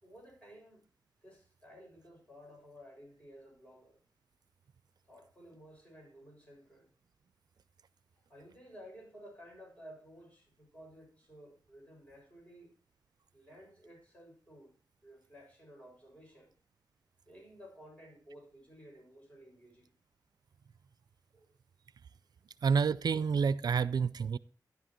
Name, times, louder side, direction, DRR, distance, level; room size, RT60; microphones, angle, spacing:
voice 1, 0.0-0.8 1.2-4.0 5.0-6.9 8.1-12.7 13.3-14.8 15.0-16.5 17.2-19.9 21.3-21.5 22.4-22.5, equal, 20° left, 6.8 m, -55 dB
voice 2, 22.6-24.4, right 6 dB, 70° right, 0.4 m, -28 dB
13.5 x 10.5 x 3.1 m
wide cardioid pair, 135°, 7 cm